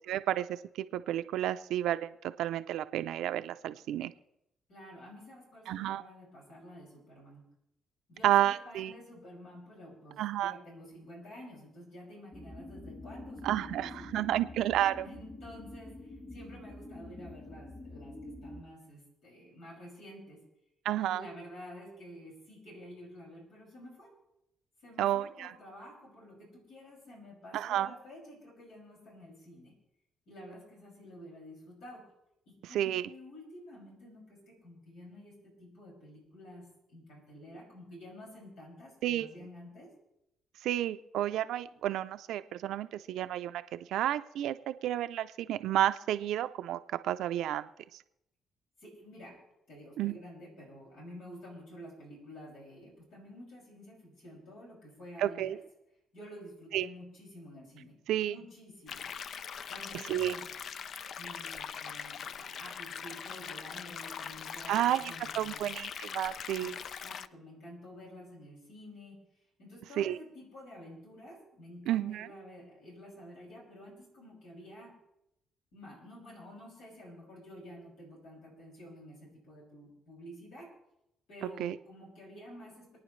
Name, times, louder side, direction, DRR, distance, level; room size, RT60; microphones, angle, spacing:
voice 1, 0.1-2.1 2.4-4.1 5.7-6.0 8.2-8.9 10.2-10.5 13.4-15.1 20.8-21.2 25.0-25.5 27.5-27.9 32.7-33.0 39.0-39.3 40.6-47.7 50.0-50.2 55.2-55.6 56.7-56.9 58.1-58.3 60.1-60.3 64.7-66.7 70.0-70.2 71.9-72.3 81.6-81.8, right 12 dB, 85° right, 11 dB, 0.5 m, -31 dB
voice 2, 4.7-7.4 8.1-14.5 15.0-20.4 20.9-24.1 24.8-29.7 30.3-32.1 32.5-39.9 48.8-49.4 49.7-55.6 56.1-58.0 58.2-59.1 59.7-60.5 61.1-65.6 66.6-69.2 69.6-75.0 75.7-80.8 81.3-83.0, equal, 85° left, -4 dB, 6.3 m, -50 dB
sound 1, 12.3-18.6, left 1 dB, 30° left, 3.7 m, -46 dB
sound 2, 58.9-67.3, left 7 dB, 60° left, 0.4 m, -42 dB
28.0 x 9.5 x 3.2 m, 0.83 s
cardioid pair, 90°, 0 cm